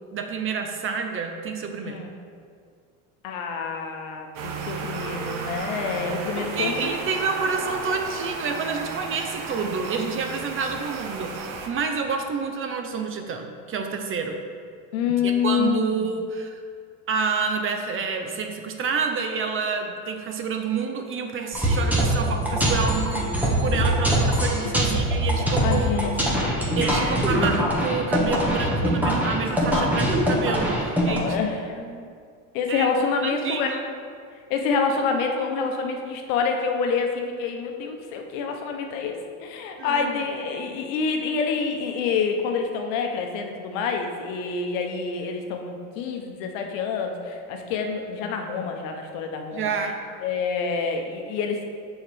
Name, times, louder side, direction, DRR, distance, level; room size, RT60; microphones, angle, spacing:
voice 1, 0.1-2.0 6.4-14.4 15.1-16.6 17.1-23.3 23.6-26.0 26.8-31.4 31.7-32.1 32.7-32.9 33.2-33.8 39.8-40.2 49.5-50.0, right 5 dB, 35° right, 5 dB, 0.6 m, -28 dB
voice 2, 3.2-6.9 14.9-16.1 24.6-24.8 25.6-26.4 31.1-31.7 32.5-33.7 34.5-49.7 50.2-51.6, left 5 dB, 75° left, 4 dB, 0.9 m, -27 dB
sound 1, 4.3-11.7, right 4 dB, 55° right, 0.9 m, -34 dB
sound 2, 21.5-31.2, right 1 dB, 5° right, 1.1 m, -23 dB
6.4 x 4.5 x 3.4 m, 2.1 s
supercardioid pair, 105°, 39 cm